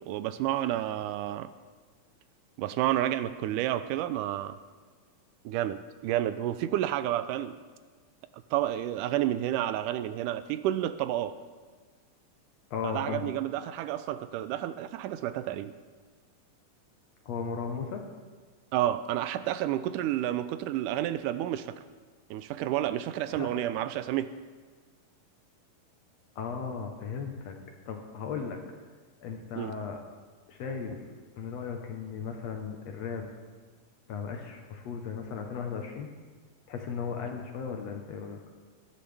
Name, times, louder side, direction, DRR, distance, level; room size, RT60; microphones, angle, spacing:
voice 1, 0.1-1.5 2.6-4.6 5.5-7.6 8.5-11.3 12.8-15.7 18.7-21.7 22.3-24.3 29.6-29.7, right 12 dB, 80° right, 13 dB, 2.0 m, -30 dB
voice 2, 12.7-13.3 17.3-18.0 23.3-23.6 26.4-27.6 27.9-28.6 29.2-30.0 30.5-31.0 31.4-33.3 34.1-36.1 36.7-38.4, left 6 dB, 65° left, 3 dB, 1.9 m, -36 dB
21.0 x 11.0 x 3.4 m, 1.4 s
omnidirectional pair, 3.7 m